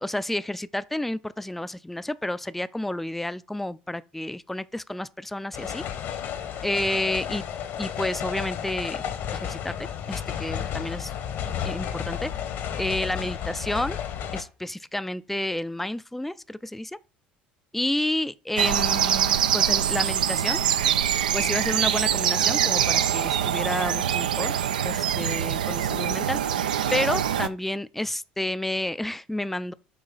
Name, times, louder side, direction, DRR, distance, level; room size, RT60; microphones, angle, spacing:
voice 1, 0.0-5.8 6.6-7.4 7.8-9.0 9.3-9.7 10.1-11.1 11.6-12.3 12.8-14.0 14.3-17.0 17.7-20.6 21.3-24.5 24.8-26.4 26.9-29.7, left 1 dB, 5° left, 0.4 m, -30 dB
sound 1, 5.5-14.4, left 9 dB, 55° left, 1.0 m, -32 dB
sound 2, 18.6-27.5, right 10 dB, 80° right, 0.4 m, -24 dB
8.9 x 3.1 x 3.9 m
figure-of-eight pair, 65°, 5 cm